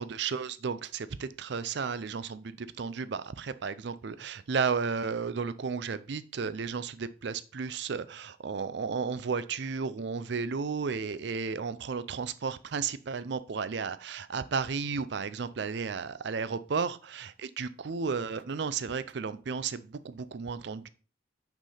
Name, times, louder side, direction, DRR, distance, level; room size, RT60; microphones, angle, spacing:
voice 1, 0.0-20.9, right 5 dB, 60° right, 0.4 m, -33 dB
6.0 x 5.6 x 4.1 m
head